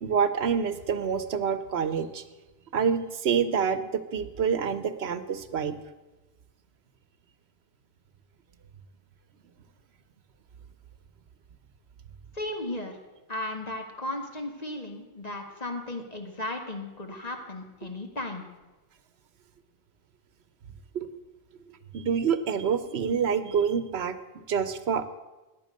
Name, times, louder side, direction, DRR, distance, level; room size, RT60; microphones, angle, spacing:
voice 1, 0.0-2.2 2.7-5.7 17.8-17.9 20.9-21.1 21.7-24.2 24.5-25.0, right 6 dB, 90° right, 12 dB, 1.1 m, -27 dB
voice 2, 12.3-12.9 13.3-18.4, left 2 dB, 40° left, 3 dB, 1.9 m, -35 dB
14.5 x 10.5 x 6.4 m, 1.1 s
omnidirectional pair, 1.1 m